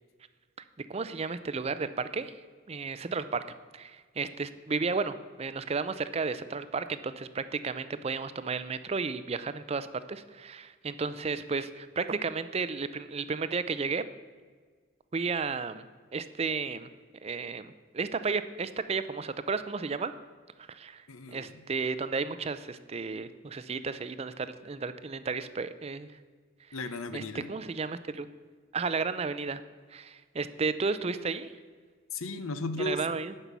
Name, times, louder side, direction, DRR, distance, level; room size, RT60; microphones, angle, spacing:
voice 1, 0.8-2.3 2.7-3.4 3.7-14.1 15.1-15.9 16.1-16.9 17.2-20.1 20.7-26.1 27.1-27.2 27.5-28.3 28.7-29.6 29.9-31.5 32.8-33.3, right 4 dB, 30° right, 13 dB, 0.4 m, -33 dB
voice 2, 21.1-21.6 26.7-27.5 32.1-33.1, left 2 dB, 85° left, 12 dB, 0.8 m, -35 dB
12.0 x 5.5 x 8.1 m, 1.5 s
head